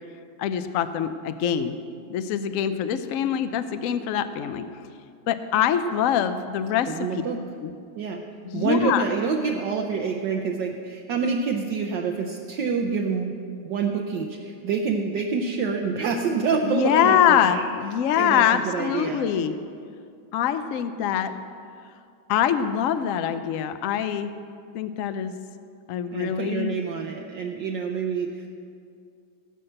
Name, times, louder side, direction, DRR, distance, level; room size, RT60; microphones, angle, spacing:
voice 1, 0.4-1.8 2.1-4.7 5.3-6.9 7.6-7.7 8.4-9.0 16.6-19.5 20.3-21.3 22.3-24.3 24.7-25.3 25.9-26.7, left 9 dB, 90° left, 10 dB, 0.7 m, -24 dB
voice 2, 6.9-7.4 8.0-8.2 8.5-17.6 18.2-19.3 26.1-28.5, right 5 dB, 70° right, 2 dB, 1.4 m, -27 dB
17.5 x 5.8 x 7.8 m, 2.4 s
omnidirectional pair, 2.1 m